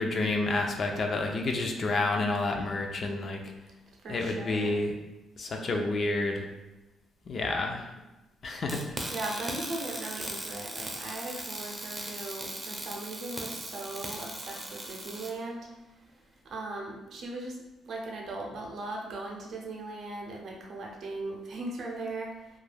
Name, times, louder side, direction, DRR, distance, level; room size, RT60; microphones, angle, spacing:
voice 1, 0.0-3.4 4.1-5.0 5.4-6.4 7.3-7.8 8.4-8.8, left 2 dB, 50° left, 2 dB, 0.4 m, -29 dB
voice 2, 4.0-4.8 9.1-15.7 16.4-17.6 17.9-22.6, right 2 dB, 65° right, 0 dB, 0.6 m, -38 dB
sound 1, 8.7-15.3, right 1 dB, 20° right, 0.5 m, -38 dB
2.3 x 2.2 x 3.2 m, 1.0 s
cardioid pair, 90°, 0 cm